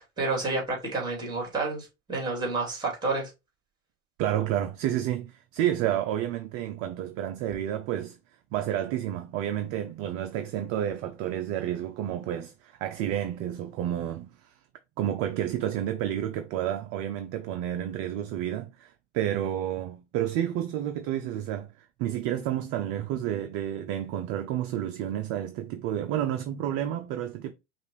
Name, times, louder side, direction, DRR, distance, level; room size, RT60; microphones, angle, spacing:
voice 1, 0.0-3.3, right 3 dB, 10° right, 2.5 m, -30 dB
voice 2, 4.2-8.2 8.5-14.5 15.0-27.5, right 11 dB, 40° right, 0.5 m, -30 dB
5.6 x 2.5 x 2.9 m
hypercardioid pair, 100°, 39 cm